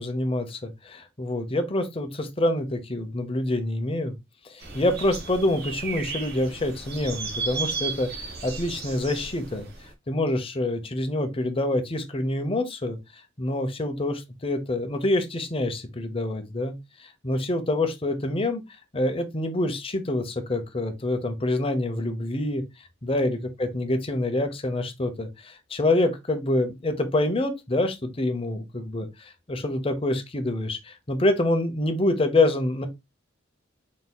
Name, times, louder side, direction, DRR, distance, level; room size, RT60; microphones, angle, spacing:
voice 1, 0.0-4.2 4.4-9.7 10.1-13.0 13.4-16.7 17.0-18.6 18.9-22.6 23.0-32.9, left 1 dB, 30° left, 0.7 m, -26 dB
sound 1, 4.6-9.9, right 4 dB, 50° right, 1.0 m, -34 dB
4.1 x 3.9 x 2.2 m
head